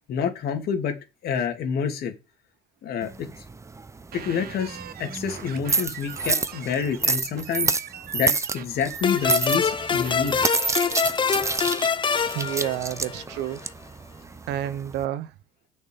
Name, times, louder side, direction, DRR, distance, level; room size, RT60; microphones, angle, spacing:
voice 1, 0.1-1.0 1.2-2.1 2.8-3.3 4.1-7.8 8.1-10.3, left 7 dB, 65° left, 2.9 m, -28 dB
sound 1, 3.0-15.0, right 4 dB, 15° right, 0.8 m, -29 dB
sound 2, 4.1-10.9, right 10 dB, 60° right, 1.3 m, -42 dB
sound 3, 9.0-13.4, left 6 dB, 30° left, 0.9 m, -25 dB
voice 2, 12.3-13.6 14.5-15.3, right 11 dB, 90° right, 1.0 m, -29 dB
8.8 x 6.4 x 7.1 m
cardioid pair, 110°, 17 cm